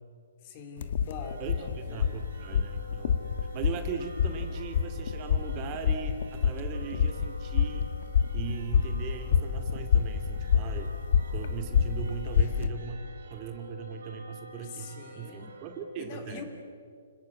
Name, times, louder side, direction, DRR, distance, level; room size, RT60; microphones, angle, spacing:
voice 1, 0.4-2.2 14.6-15.5 16.0-16.4, left 5 dB, 35° left, 6 dB, 3.0 m, -44 dB
sound 1, 0.8-12.7, left 7 dB, 55° left, 1.7 m, -28 dB
sound 2, 1.2-15.8, equal, 70° right, 4.3 m, -48 dB
voice 2, 1.4-7.9 8.3-10.9 11.3-13.0 13.3-16.4, right 7 dB, 25° right, 6 dB, 2.3 m, -39 dB
29.0 x 18.5 x 9.6 m, 2.3 s
hypercardioid pair, 160°, 0 cm